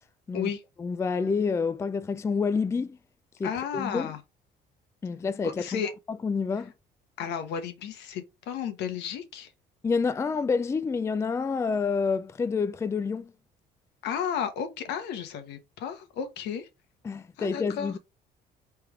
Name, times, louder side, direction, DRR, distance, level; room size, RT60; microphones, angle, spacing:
voice 1, 0.8-3.0 3.4-4.1 5.0-5.8 6.1-6.7 9.8-13.3 17.0-18.0, left 5 dB, 15° left, 0.3 m, -28 dB
voice 2, 3.4-4.2 5.4-5.9 7.2-9.5 14.0-16.7 17.4-17.9, left 8 dB, 85° left, 1.1 m, -33 dB
3.5 x 3.3 x 4.6 m
cardioid pair, 110°, 17 cm